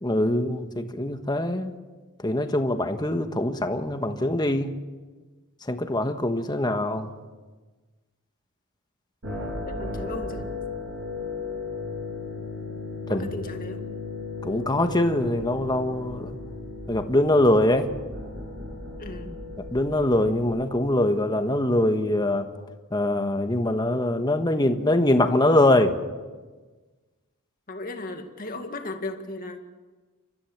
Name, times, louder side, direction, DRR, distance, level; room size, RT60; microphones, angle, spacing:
voice 1, 0.0-1.7 2.2-4.7 5.7-7.1 13.1-13.3 14.4-16.3 16.9-17.9 19.7-22.5 22.9-25.9, left 1 dB, 20° left, 7 dB, 1.3 m, -23 dB
sound 1, 9.2-20.5, left 3 dB, 60° right, 6.9 m, -35 dB
voice 2, 9.7-10.4 13.1-13.8 19.0-19.5 27.7-29.6, left 2 dB, 40° left, 5 dB, 2.0 m, -36 dB
30.0 x 14.0 x 7.3 m, 1.3 s
head